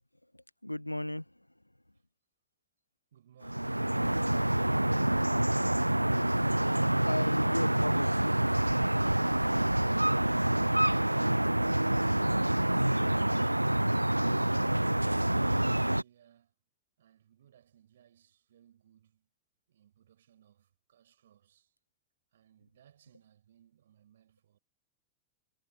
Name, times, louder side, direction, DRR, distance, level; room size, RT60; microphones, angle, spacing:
voice 1, 0.3-1.6 7.0-8.6, left 1 dB, 85° left, 1.2 m, -36 dB
voice 2, 3.1-5.1 15.3-16.5 17.0-19.3 19.7-21.7 22.3-24.6, right 10 dB, 60° right, 6.4 m, -63 dB
sound 1, 3.4-16.0, right 1 dB, 85° right, 0.3 m, -27 dB
figure-of-eight pair, 90°, 0 cm